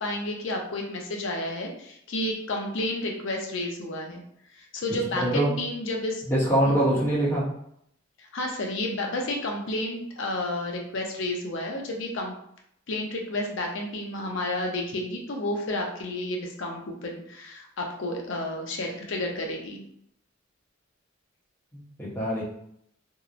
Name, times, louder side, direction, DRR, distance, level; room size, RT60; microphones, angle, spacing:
voice 1, 0.0-4.2 4.7-6.2 6.6-6.8 8.2-12.3 12.9-19.8, left 1 dB, 65° left, 1 dB, 0.5 m, -31 dB
voice 2, 5.2-5.5 6.3-7.5 21.7-22.4, right 1 dB, 10° left, -7 dB, 0.7 m, -24 dB
2.8 x 2.0 x 2.4 m, 0.72 s
head